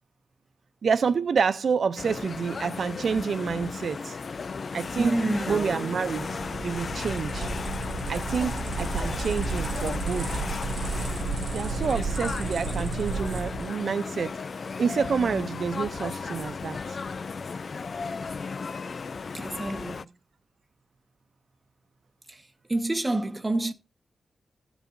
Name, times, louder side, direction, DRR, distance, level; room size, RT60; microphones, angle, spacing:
voice 1, 0.8-4.2 4.7-5.2 5.5-6.3 6.6-7.5 8.1-10.4 11.5-14.4 14.8-17.0, right 6 dB, 70° right, 0.4 m, -28 dB
sound 1, 2.0-20.0, left 5 dB, 55° left, 0.4 m, -35 dB
voice 2, 5.0-5.6 19.3-20.1 22.3-22.4 22.7-23.7, right 2 dB, 20° right, 1.1 m, -28 dB
Acoustic guitar, 5.5-8.2, right 4 dB, 50° right, 0.9 m, -42 dB
sound 2, 6.1-13.7, right 4 dB, 85° right, 4.0 m, -32 dB
15.5 x 8.0 x 2.5 m
cardioid pair, 80°, 0 cm